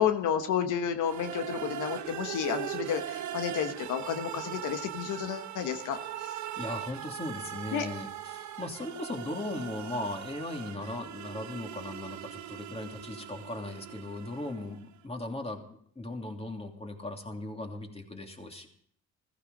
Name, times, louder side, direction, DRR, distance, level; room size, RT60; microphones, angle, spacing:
voice 1, 0.0-6.4 7.7-7.8, left 8 dB, 85° left, 7 dB, 1.3 m, -31 dB
sound 1, 1.0-14.9, right 11 dB, 70° right, 1.1 m, -40 dB
voice 2, 6.6-18.7, left 2 dB, 20° left, 3 dB, 2.9 m, -38 dB
15.5 x 15.0 x 5.3 m, 0.63 s
cardioid pair, 90°, 30 cm